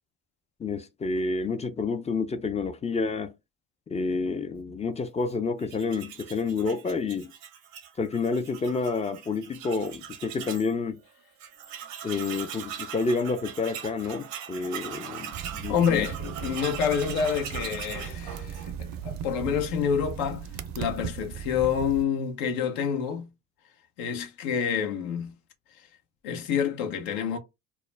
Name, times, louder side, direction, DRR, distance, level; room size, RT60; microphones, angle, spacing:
voice 1, 0.6-3.3 3.9-7.3 8.0-11.0 12.0-16.1, left 4 dB, 20° left, 0.3 m, -29 dB
Tools, 5.6-10.7 11.1-11.2 11.4-19.0, right 9 dB, 80° right, 0.8 m, -41 dB
sound 1, 15.3-22.0, right 8 dB, 50° right, 0.5 m, -37 dB
voice 2, 15.7-20.5 20.7-23.3 24.0-25.3 25.8-25.9 26.2-27.4, left 7 dB, 80° left, 0.8 m, -28 dB
2.3 x 2.1 x 3.1 m
hypercardioid pair, 70°, 38 cm